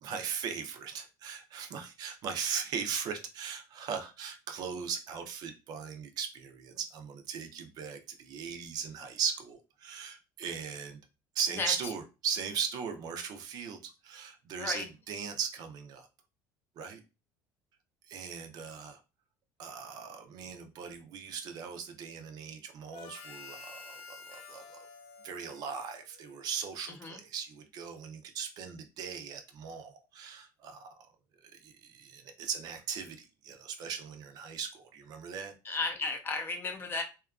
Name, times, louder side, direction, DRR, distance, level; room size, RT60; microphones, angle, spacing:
voice 1, 0.0-11.0 11.3-16.1 16.8-17.0 18.1-19.0 19.6-24.8 25.2-30.9 31.4-35.5, right 7 dB, 55° right, 0.4 m, -38 dB
Harmonica, 22.9-26.7, left 4 dB, 75° left, 0.5 m, -50 dB
voice 2, 26.9-27.2 35.6-37.0, left 3 dB, 25° left, 0.5 m, -34 dB
2.8 x 2.3 x 2.3 m
cardioid pair, 130°, 8 cm